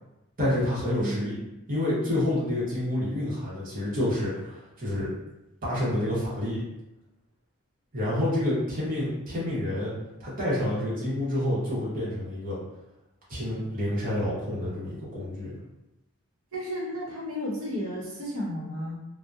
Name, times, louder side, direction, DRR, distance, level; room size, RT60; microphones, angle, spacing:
voice 1, 0.4-1.4 1.7-5.1 5.6-6.6 7.9-9.9 10.2-12.6 13.3-15.5, left 1 dB, 40° right, -8 dB, 0.9 m, -28 dB
voice 2, 1.0-1.3 16.5-19.0, equal, 85° right, -4 dB, 0.7 m, -33 dB
2.7 x 2.0 x 2.3 m, 0.95 s
head